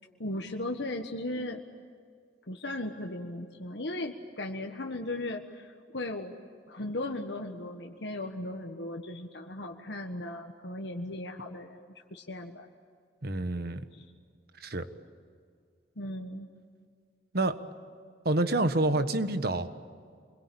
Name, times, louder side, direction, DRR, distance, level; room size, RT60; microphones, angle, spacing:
voice 1, 0.2-1.6 2.5-6.4 6.7-11.8 12.1-12.7 13.9-14.0 16.0-16.5, left 1 dB, 70° left, 2 dB, 1.5 m, -37 dB
voice 2, 13.2-13.8 14.6-14.9 17.3-17.6 18.2-19.7, right 2 dB, 60° right, 10 dB, 1.5 m, -27 dB
27.5 x 22.0 x 8.7 m, 2.1 s
head